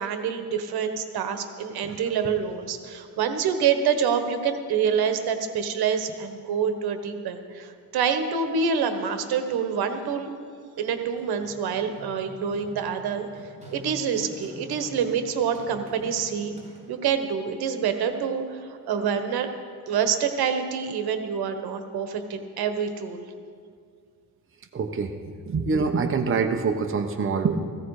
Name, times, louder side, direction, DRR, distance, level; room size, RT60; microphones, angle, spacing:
voice 1, 0.0-10.3 10.8-13.3 13.7-16.6 16.9-19.5 19.9-23.3, right 7 dB, 80° right, 7 dB, 1.4 m, -26 dB
Run, 10.8-17.2, left 1 dB, 20° right, 3.7 m, -47 dB
voice 2, 24.7-27.6, right 5 dB, 35° right, 4 dB, 1.1 m, -25 dB
17.0 x 15.5 x 4.9 m, 2.1 s
cardioid pair, 125°, 37 cm